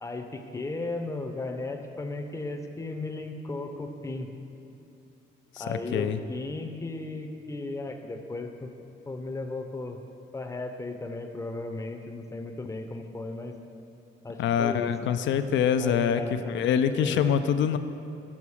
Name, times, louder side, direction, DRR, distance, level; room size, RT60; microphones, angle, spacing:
voice 1, 0.0-4.3 5.6-8.7 9.1-10.0 10.3-13.5 14.2-14.9 15.8-16.6 16.9-17.4, left 2 dB, 15° left, 4 dB, 0.7 m, -35 dB
voice 2, 5.6-6.2 14.4-17.8, left 8 dB, 70° left, 10 dB, 0.4 m, -25 dB
7.1 x 5.9 x 4.8 m, 2.6 s
cardioid pair, 90°, 20 cm